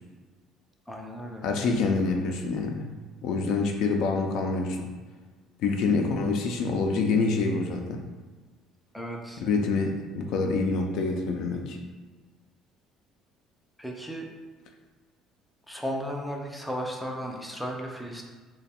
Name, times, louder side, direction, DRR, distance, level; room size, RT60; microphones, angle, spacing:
voice 1, 0.9-1.5 8.9-9.4 13.8-14.3 15.7-18.2, equal, ahead, -1 dB, 0.4 m, -35 dB
voice 2, 1.4-2.9 3.2-4.9 5.6-8.0 9.4-11.8, left 4 dB, 60° left, 3 dB, 0.4 m, -26 dB
3.2 x 2.2 x 4.2 m, 1.4 s
cardioid pair, 155°, 0 cm